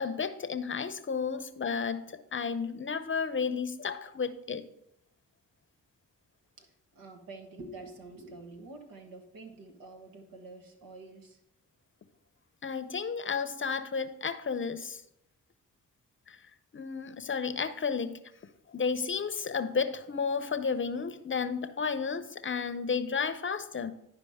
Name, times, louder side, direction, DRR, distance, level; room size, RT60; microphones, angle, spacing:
voice 1, 0.0-4.6 12.6-15.0 16.3-16.4 16.7-18.2 18.7-23.9, left 5 dB, 35° left, 12 dB, 0.7 m, -32 dB
voice 2, 6.6-11.4, right 2 dB, 85° right, 4 dB, 1.3 m, -47 dB
11.0 x 4.9 x 3.5 m, 0.81 s
cardioid pair, 60°, 34 cm